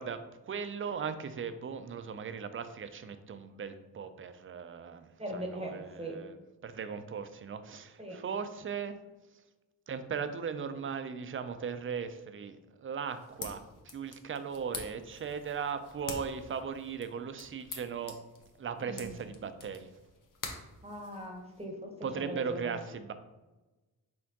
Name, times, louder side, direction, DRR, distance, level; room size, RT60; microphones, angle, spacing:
voice 1, 0.0-6.3 6.6-9.0 9.9-18.1 18.6-19.9 22.0-23.1, right 6 dB, 35° right, 10 dB, 0.4 m, -38 dB
voice 2, 5.2-6.2 8.0-8.2 18.8-19.2 20.8-22.8, right 1 dB, 15° right, 1 dB, 0.8 m, -40 dB
sound 1, 13.1-21.6, left 4 dB, 55° left, 0.9 m, -47 dB
4.2 x 3.7 x 2.8 m, 1.1 s
cardioid pair, 65°, 38 cm